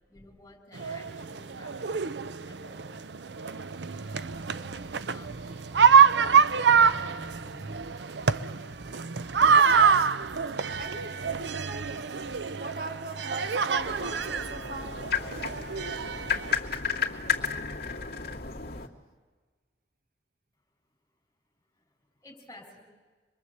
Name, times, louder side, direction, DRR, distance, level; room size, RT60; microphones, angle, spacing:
voice 1, 0.1-2.0 2.4-3.1 4.3-5.9 6.8-7.7 22.2-22.8, left 1 dB, 15° left, 1 dB, 5.4 m, -52 dB
sound 1, 0.8-16.6, right 6 dB, 80° right, 0.7 m, -25 dB
sound 2, 4.1-14.0, right 1 dB, 20° right, 1.3 m, -53 dB
voice 2, 9.3-10.3 10.8-12.0 12.6-15.0, right 2 dB, 55° right, 7 dB, 1.3 m, -41 dB
sound 3, 13.8-18.9, left 6 dB, 60° left, 2.5 m, -32 dB
26.0 x 21.5 x 8.1 m, 1.4 s
head